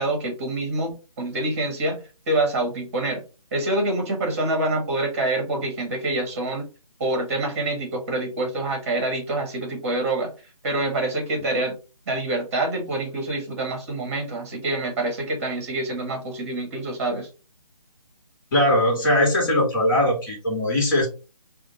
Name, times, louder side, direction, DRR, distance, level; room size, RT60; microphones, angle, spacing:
voice 1, 0.0-3.2 3.5-6.6 7.0-10.3 10.6-11.8 12.1-17.3, right 2 dB, 25° right, 3 dB, 1.2 m, -26 dB
voice 2, 18.5-21.1, left 1 dB, 35° left, -1 dB, 2.1 m, -20 dB
3.5 x 2.6 x 3.8 m, 0.32 s
figure-of-eight pair, 155°, 19 cm